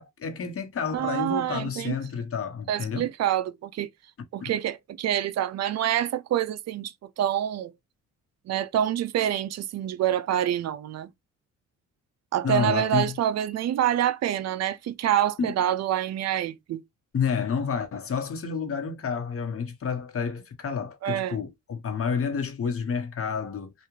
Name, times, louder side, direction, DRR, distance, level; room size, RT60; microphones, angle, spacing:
voice 1, 0.0-3.1 4.4-4.5 12.4-13.2 15.4-15.5 17.1-23.7, left 6 dB, 50° left, 1.1 m, -29 dB
voice 2, 0.9-1.9 2.7-3.9 4.3-7.7 8.5-11.1 12.3-16.8 21.0-21.4, right 11 dB, 60° right, 0.5 m, -26 dB
3.4 x 2.4 x 3.1 m
cardioid pair, 90°, 30 cm